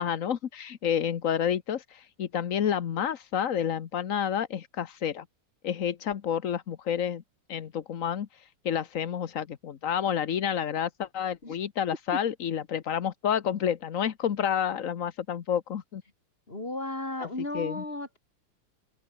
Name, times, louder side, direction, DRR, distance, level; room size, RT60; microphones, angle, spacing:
voice 1, 0.0-5.2 5.6-7.2 7.5-16.0 17.2-17.3 17.5-17.8, left 9 dB, 50° left, 1.1 m, -29 dB
voice 2, 16.5-18.2, left 2 dB, 25° left, 5.0 m, -34 dB
open air
omnidirectional pair, 2.4 m